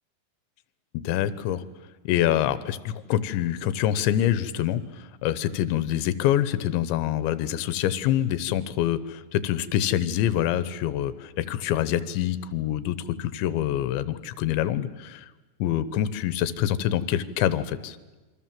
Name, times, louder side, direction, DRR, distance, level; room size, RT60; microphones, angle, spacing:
voice 1, 0.9-1.6 2.1-4.8 5.2-15.3 15.6-18.0, left 11 dB, 85° left, 15 dB, 3.3 m, -26 dB
27.5 x 24.0 x 7.6 m, 1.2 s
omnidirectional pair, 5.2 m